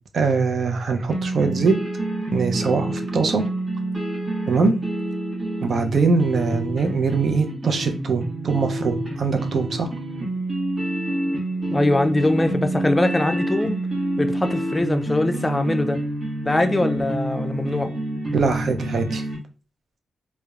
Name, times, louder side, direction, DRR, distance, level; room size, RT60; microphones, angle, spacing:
voice 1, 0.1-1.8 2.3-3.4 4.5-4.8 5.6-9.9 18.3-19.2, right 4 dB, 65° right, 0.5 m, -22 dB
sound 1, 1.1-19.4, right 1 dB, 30° right, 1.0 m, -28 dB
voice 2, 11.7-13.8 14.2-16.0 16.4-17.9, left 1 dB, 20° left, 0.3 m, -22 dB
2.8 x 2.0 x 2.3 m
cardioid pair, 80°, 0 cm